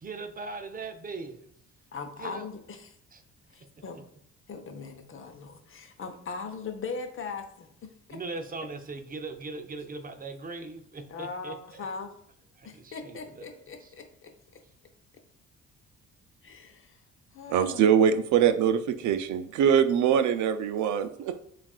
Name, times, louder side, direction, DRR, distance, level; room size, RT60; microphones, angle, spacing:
voice 1, 0.0-1.5 2.2-2.4 3.1-3.2 8.1-11.9 12.6-13.4 13.8-13.9, right 3 dB, 30° right, 0.5 m, -39 dB
voice 2, 1.9-3.0 3.5-4.0 4.5-8.2 11.1-12.1 12.6-14.6 16.4-17.0 17.3-17.9, left 4 dB, 45° left, 0.7 m, -40 dB
voice 3, 17.5-21.4, right 8 dB, 75° right, 0.5 m, -23 dB
7.1 x 2.5 x 2.3 m
cardioid pair, 90°, 30 cm